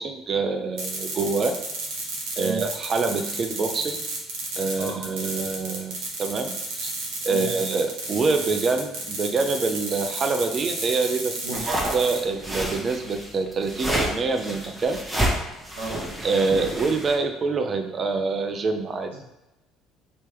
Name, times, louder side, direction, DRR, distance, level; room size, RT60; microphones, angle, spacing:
voice 1, 0.0-1.6 2.4-4.0 4.6-6.9 7.2-15.0 16.2-19.1, right 4 dB, 40° right, 6 dB, 0.6 m, -26 dB
sound 1, 0.8-12.2, right 2 dB, 70° right, 1.2 m, -32 dB
voice 2, 2.4-2.6 4.8-5.0 7.3-7.5 11.4-11.6 15.7-16.0 19.1-19.2, right 3 dB, 90° right, -5 dB, 1.2 m, -34 dB
sound 2, 11.5-17.2, right 1 dB, 10° right, 1.1 m, -29 dB
3.4 x 2.9 x 4.4 m, 0.97 s
hypercardioid pair, 60°, 0 cm